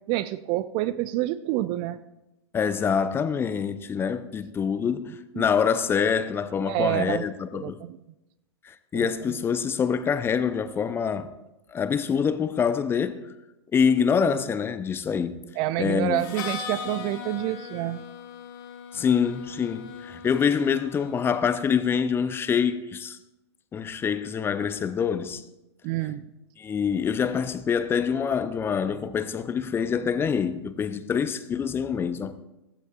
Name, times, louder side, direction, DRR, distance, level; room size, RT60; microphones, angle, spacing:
voice 1, 0.1-2.0 5.3-5.5 6.6-7.2 7.5-8.0 8.9-9.4 15.6-18.0 25.8-26.2, right 15 dB, 30° right, 0.4 m, -28 dB
voice 2, 2.5-7.8 8.6-11.3 11.7-13.3 13.7-15.4 15.8-16.2 18.9-23.2 23.7-25.4 26.6-32.3, left 7 dB, 15° left, 0.5 m, -25 dB
Harmonica, 16.2-21.9, left 7 dB, 45° left, 1.6 m, -39 dB
15.5 x 14.5 x 2.5 m
figure-of-eight pair, 105°, 15 cm